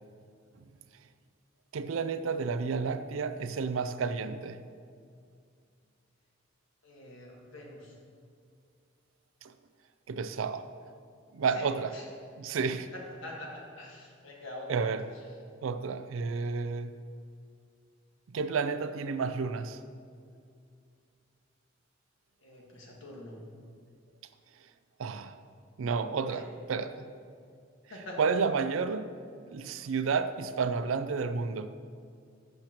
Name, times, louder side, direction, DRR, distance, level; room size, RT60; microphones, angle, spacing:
voice 1, 1.7-4.6 9.4-9.5 10.1-10.7 11.3-11.9 12.4-12.9 14.7-15.0 15.6-17.0 18.3-19.8 25.0-25.3 25.8-27.1 28.2-29.1 29.5-31.7, right 5 dB, 85° right, 12 dB, 0.4 m, -31 dB
voice 2, 6.8-7.9 11.5-12.0 12.9-14.9 22.4-23.4 26.2-26.5 27.9-28.2, left 1 dB, 70° left, -2 dB, 1.6 m, -45 dB
11.5 x 6.6 x 3.0 m, 2.3 s
head